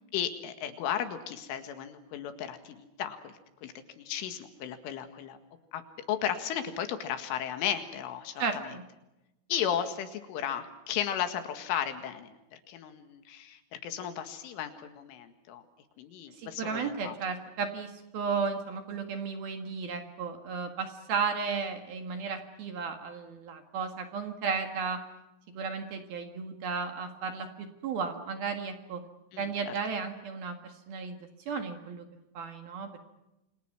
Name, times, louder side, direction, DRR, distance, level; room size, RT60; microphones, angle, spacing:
voice 1, 0.1-3.3 3.6-5.4 5.7-5.8 6.1-8.7 9.5-15.6 16.0-17.2 29.3-29.7, left 9 dB, 75° left, 8 dB, 4.2 m, -35 dB
voice 2, 8.4-8.8 16.4-25.0 25.5-29.0 29.4-31.2 31.5-32.0 32.3-33.0, right 5 dB, 55° right, 5 dB, 3.2 m, -34 dB
28.5 x 26.0 x 6.0 m, 0.93 s
omnidirectional pair, 5.9 m